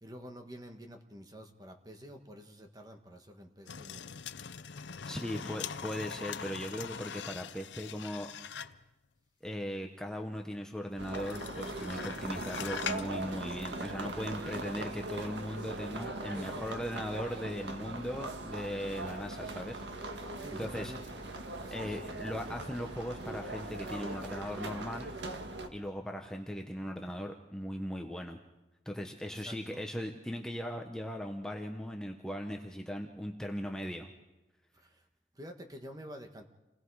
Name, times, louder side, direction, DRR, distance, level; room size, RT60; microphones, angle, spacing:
voice 1, 0.0-4.1 5.2-5.6 16.3-16.7 20.4-21.0 21.6-22.0 29.2-29.8 34.7-35.0 35.3-36.4, equal, 20° right, 4 dB, 1.5 m, -49 dB
sound 1, 3.7-8.9 11.1-13.1 13.5-13.6, left 7 dB, 80° left, 0.7 m, -42 dB
voice 2, 5.1-8.3 9.4-20.2 20.5-20.9 21.7-25.1 25.7-28.4 28.8-34.1, equal, 5° left, 2 dB, 1.1 m, -38 dB
sound 2, 11.0-25.7, right 2 dB, 80° right, 1.7 m, -40 dB
28.5 x 20.0 x 4.8 m, 1.0 s
head